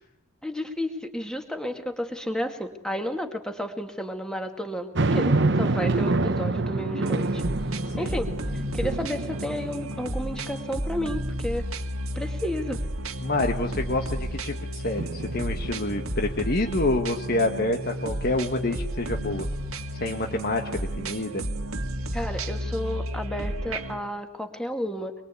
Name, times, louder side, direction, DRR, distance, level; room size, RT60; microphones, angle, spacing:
voice 1, 0.4-7.4 8.0-11.6 12.2-12.8 22.1-25.1, equal, 5° left, 5 dB, 2.1 m, -32 dB
sound 1, 4.9-10.5 11.0-11.1 15.0-16.1, right 2 dB, 55° right, 1.0 m, -27 dB
sound 2, 7.0-24.0, right 1 dB, 90° right, 1.9 m, -32 dB
voice 2, 13.2-19.5 20.0-21.4, left 2 dB, 45° left, 3 dB, 1.6 m, -27 dB
24.0 x 23.0 x 8.4 m, 0.85 s
head